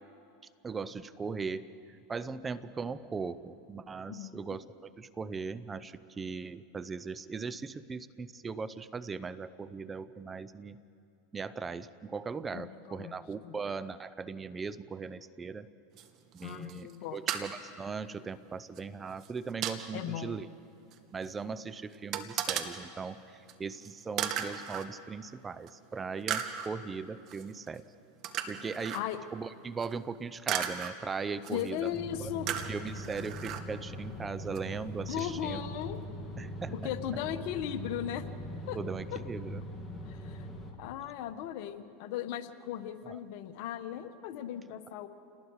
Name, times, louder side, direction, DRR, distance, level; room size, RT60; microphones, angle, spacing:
voice 1, 0.6-10.8 11.3-15.7 16.3-20.5 21.1-27.8 28.5-29.0 29.3-31.9 32.2-32.3 32.7-35.6 36.4-36.9 38.7-39.6 43.0-43.2, right 5 dB, 20° right, 15 dB, 0.7 m, -39 dB
voice 2, 4.1-4.4 12.5-13.1 13.4-13.6 16.4-17.2 19.9-20.4 28.9-29.2 31.5-32.5 35.1-36.0 36.7-38.2 38.7-38.8 39.1-39.2 40.1-40.5 40.8-45.1, left 11 dB, 60° left, 9 dB, 1.3 m, -37 dB
sound 1, 16.0-16.1 16.3-17.0 17.3-17.5 18.8-18.9 19.2-19.8 20.9-21.0 21.2-21.3 22.1-22.7 23.5-23.6 23.8-23.9 24.2-24.9 25.7-25.8 26.3-26.7 27.3-27.4 28.2-29.0 29.8-29.9 30.5-30.9 31.4-31.8 32.5-33.6 34.6-34.7 35.2-35.3, right 10 dB, 50° right, 1.6 m, -35 dB
sound 2, 31.9-40.7, equal, 15° left, 2.9 m, -41 dB
29.0 x 19.5 x 4.9 m, 2.5 s
hypercardioid pair, 110°, 0 cm